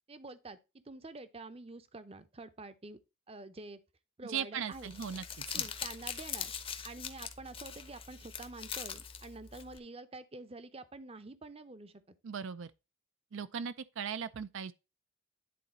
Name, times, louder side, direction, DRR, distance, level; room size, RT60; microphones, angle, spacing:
voice 1, 0.1-3.0 3.3-3.8 4.2-4.9 5.5-6.5 6.8-11.9, right 2 dB, 25° right, 0.6 m, -47 dB
voice 2, 4.2-5.6 12.2-12.7 13.3-14.7, right 7 dB, 65° right, 0.4 m, -38 dB
Crumpling crinkling, 4.7-9.8, left 7 dB, 25° left, 0.7 m, -42 dB
10.5 x 4.1 x 4.1 m
head